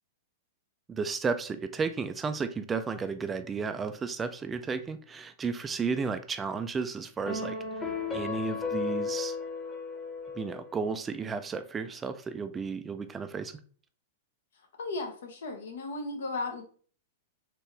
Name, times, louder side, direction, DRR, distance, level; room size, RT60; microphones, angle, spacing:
voice 1, 0.9-7.6 8.1-9.4 10.4-13.6, right 5 dB, 15° right, 9 dB, 0.4 m, -33 dB
sound 1, 7.3-10.8, left 4 dB, 15° left, 0.9 m, -34 dB
voice 2, 14.8-16.6, left 3 dB, 80° left, 3 dB, 1.2 m, -35 dB
4.5 x 2.9 x 3.3 m, 0.43 s
hypercardioid pair, 140°, 0 cm